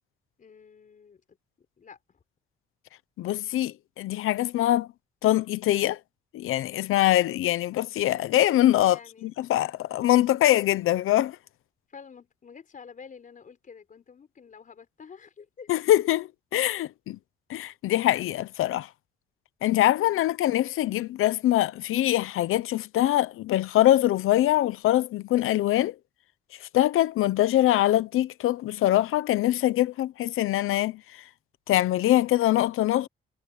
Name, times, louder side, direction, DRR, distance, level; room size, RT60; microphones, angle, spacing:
voice 1, 0.4-2.2 8.8-9.4 11.9-15.7 19.9-20.2, left 6 dB, 40° left, 5.1 m, -49 dB
voice 2, 3.2-4.9 5.2-6.0 6.3-11.4 15.7-17.2 17.5-18.9 19.6-25.9 26.7-31.0 31.7-33.1, left 14 dB, 90° left, 0.8 m, -23 dB
cardioid pair, 135°, 21 cm